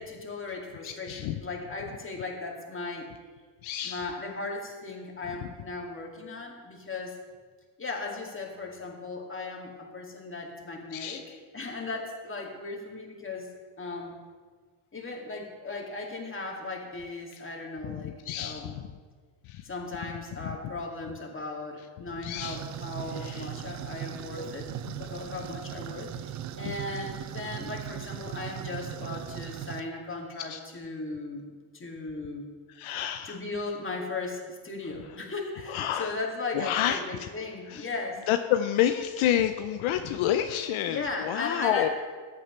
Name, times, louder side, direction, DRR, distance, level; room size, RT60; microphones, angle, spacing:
voice 1, 0.0-3.1 3.8-7.2 7.8-13.5 13.8-14.2 14.9-18.8 19.6-24.7 25.0-31.5 31.7-32.5 33.3-38.2 40.9-41.9, left 3 dB, 25° left, 0 dB, 2.4 m, -37 dB
voice 2, 0.8-1.4 3.6-4.1 10.9-11.2 17.9-18.8 19.5-19.6 22.2-22.6 23.1-23.5 30.5-30.6 32.8-33.4 35.7-36.1 36.5-37.3 37.7-37.9 38.3-41.9, left 11 dB, 75° left, 7 dB, 0.7 m, -29 dB
sound 1, 22.4-29.8, right 11 dB, 40° right, 0.4 m, -38 dB
14.0 x 8.5 x 3.3 m, 1.5 s
supercardioid pair, 75°, 50 cm